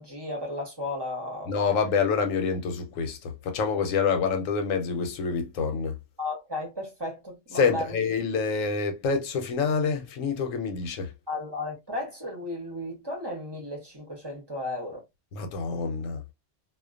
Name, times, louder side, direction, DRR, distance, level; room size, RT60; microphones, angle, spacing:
voice 1, 0.0-1.5 6.2-7.9 11.3-15.0, left 2 dB, 25° right, 0.7 m, -34 dB
voice 2, 1.5-5.9 7.6-11.1 15.3-16.2, left 5 dB, 90° left, 1.0 m, -27 dB
2.3 x 2.2 x 2.4 m
omnidirectional pair, 1.3 m